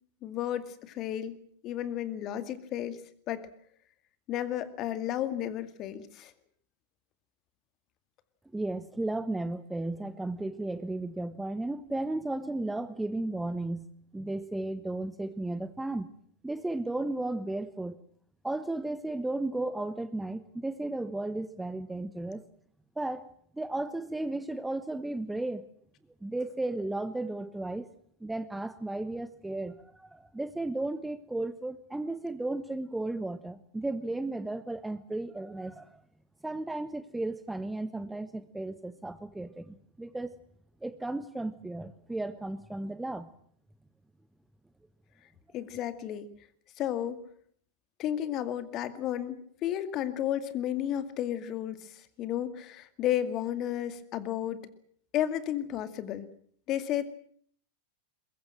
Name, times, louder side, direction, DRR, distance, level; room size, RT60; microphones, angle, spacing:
voice 1, 0.2-1.4 1.6-3.0 3.3-3.5 4.3-6.3 45.5-46.3 46.8-47.2 48.0-54.6 55.1-56.3 56.7-57.0, left 11 dB, 35° left, 12 dB, 2.2 m, -32 dB
voice 2, 8.5-13.9 14.1-16.1 16.4-18.0 18.4-22.4 23.0-25.7 26.2-27.9 28.2-36.0 36.4-40.4 40.8-43.3, right 2 dB, 5° right, 14 dB, 1.0 m, -34 dB
22.5 x 22.0 x 7.6 m, 0.62 s
figure-of-eight pair, 90°, 0 cm